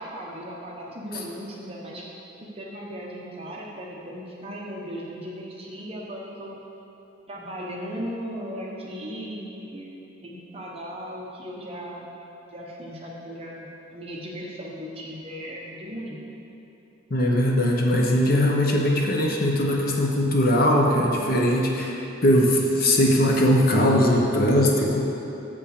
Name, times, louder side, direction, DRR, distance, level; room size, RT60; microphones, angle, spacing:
voice 1, 0.0-2.0 2.4-6.5 7.3-9.9 10.2-12.1 12.5-16.2 22.3-22.5, equal, 30° right, -3 dB, 1.0 m, -37 dB
voice 2, 17.1-25.0, equal, 45° left, 0 dB, 0.8 m, -20 dB
6.9 x 5.6 x 6.6 m, 3.0 s
head